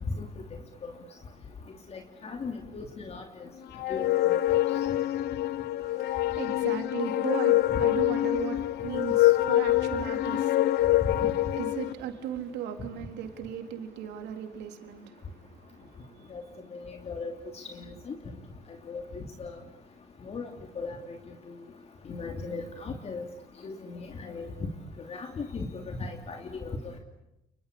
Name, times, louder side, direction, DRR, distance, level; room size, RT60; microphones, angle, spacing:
voice 1, 1.9-3.5 3.9-4.6 7.7-7.8 16.3-16.4 16.7-18.2 18.9-19.5 20.2-20.5 20.7-21.2 22.1-23.3 23.6-24.5 25.1-27.0, left 4 dB, 40° left, 4 dB, 3.0 m, -38 dB
sound 1, 3.8-11.9, left 15 dB, 75° left, 1.0 m, -25 dB
voice 2, 5.8-11.2 11.5-16.3, right 9 dB, 85° right, 5 dB, 3.8 m, -38 dB
29.5 x 22.5 x 8.7 m, 0.88 s
cardioid pair, 110°, 17 cm